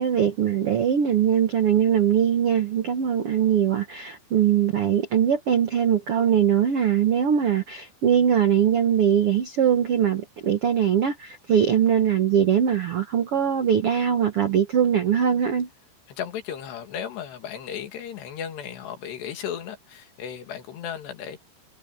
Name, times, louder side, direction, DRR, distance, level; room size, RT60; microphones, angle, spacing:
voice 1, 0.0-15.7, right 9 dB, 80° right, 1.2 m, -21 dB
voice 2, 16.1-21.4, left 8 dB, 80° left, 4.5 m, -35 dB
omnidirectional pair, 4.8 m